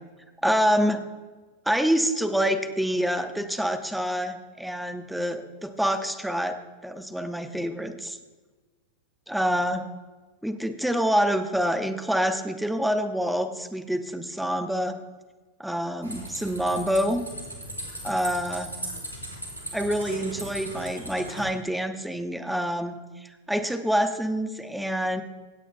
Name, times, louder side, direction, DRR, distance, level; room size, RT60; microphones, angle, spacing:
voice 1, 0.4-1.0 1.6-6.6 6.8-8.2 9.3-9.9 10.4-15.0 15.6-17.2 18.0-18.7 19.7-25.2, equal, ahead, 7 dB, 1.0 m, -26 dB
sound 1, 16.0-21.4, right 1 dB, 90° left, 3.7 m, -37 dB
24.5 x 9.0 x 2.3 m, 1.3 s
figure-of-eight pair, 90°, 0 cm